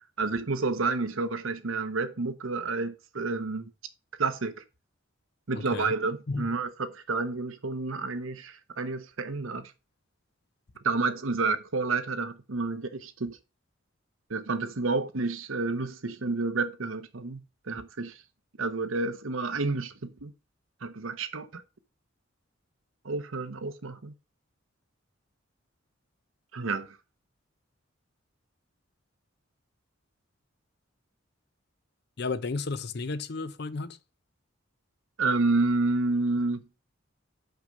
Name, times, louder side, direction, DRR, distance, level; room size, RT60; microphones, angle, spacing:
voice 1, 0.2-3.7 4.2-4.6 5.5-9.7 10.8-13.4 14.3-18.2 18.6-20.3 20.8-21.6 23.0-24.1 26.5-27.0 35.2-36.7, right 3 dB, 80° right, 0.9 m, -30 dB
voice 2, 5.5-5.9 6.3-6.5 32.2-34.0, left 3 dB, 55° left, 0.6 m, -33 dB
5.7 x 5.1 x 6.4 m
head